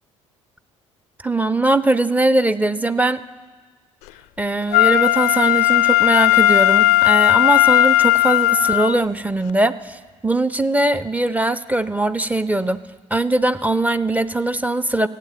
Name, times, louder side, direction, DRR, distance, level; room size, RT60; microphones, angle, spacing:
voice 1, 1.2-3.2 4.4-12.8 13.1-15.1, right 2 dB, 10° right, 15 dB, 0.5 m, -20 dB
Wind instrument woodwind instrument, 4.7-9.0 9.5-9.6, left 15 dB, 60° left, 0.4 m, -16 dB
15.0 x 8.9 x 7.5 m, 1.4 s
figure-of-eight pair, 50°, 16 cm